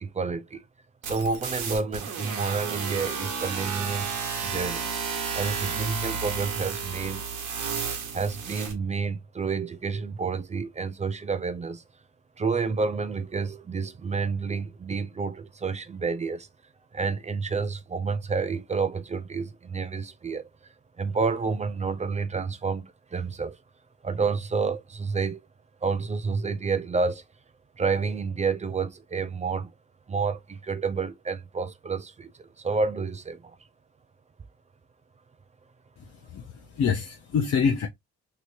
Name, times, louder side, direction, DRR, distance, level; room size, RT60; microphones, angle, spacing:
voice 1, 0.0-0.6 1.1-4.1 4.4-4.9 5.3-7.2 8.1-11.8 12.4-16.5 16.9-20.4 21.0-22.8 23.1-23.6 24.0-25.4 25.8-27.2 27.8-29.7 30.1-32.3 32.6-33.4, right 4 dB, 25° right, 0.4 m, -29 dB
sound 1, 1.0-8.7, right 6 dB, 80° right, 1.1 m, -32 dB
voice 2, 36.0-37.9, left 6 dB, 55° left, 0.6 m, -26 dB
3.1 x 2.9 x 2.5 m
cardioid pair, 90°, 30 cm